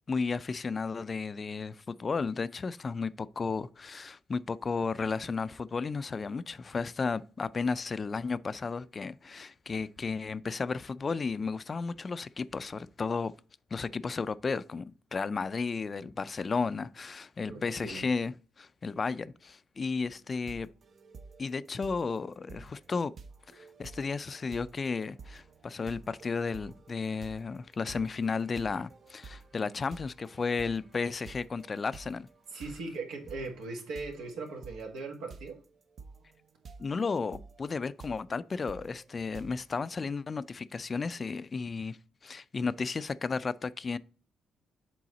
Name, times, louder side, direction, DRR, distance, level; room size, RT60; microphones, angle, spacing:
voice 1, 0.1-13.3 13.7-20.7 21.4-23.1 23.5-32.3 36.8-42.0 42.2-44.0, left 4 dB, 35° left, 0.3 m, -33 dB
voice 2, 17.4-18.0 32.5-35.6, right 3 dB, 90° right, 1.6 m, -39 dB
sound 1, 20.0-39.9, right 4 dB, 50° right, 0.6 m, -51 dB
7.5 x 3.9 x 4.0 m
cardioid pair, 90°, 0 cm